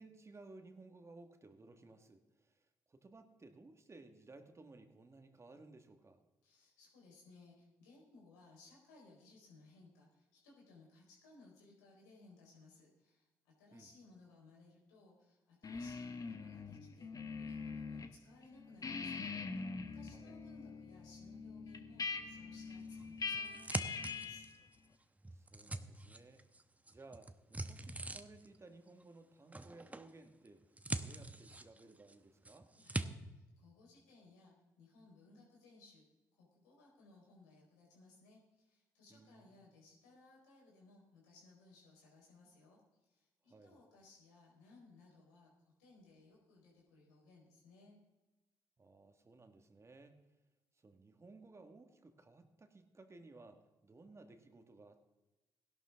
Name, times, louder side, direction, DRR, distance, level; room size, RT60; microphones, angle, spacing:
voice 1, 0.0-6.2 13.7-13.9 20.1-20.4 25.3-26.4 26.9-30.6 30.9-32.7 39.1-39.5 43.5-43.8 48.8-50.2 50.7-55.0, right 3 dB, 30° right, 7 dB, 1.8 m, -58 dB
voice 2, 6.4-17.1 17.4-19.3 19.8-24.5 32.7-36.0 36.3-48.0, left 3 dB, 85° left, -2 dB, 4.6 m, -62 dB
sound 1, 15.6-18.1 18.4-24.6, left 4 dB, 40° left, 1.4 m, -43 dB
sound 2, 22.9-24.7 25.2-26.6 26.9-28.6 29.5-30.1 30.4-32.1 32.4-33.1, right 2 dB, 15° right, 1.0 m, -43 dB
16.5 x 11.5 x 3.7 m, 1.0 s
hypercardioid pair, 50°, 9 cm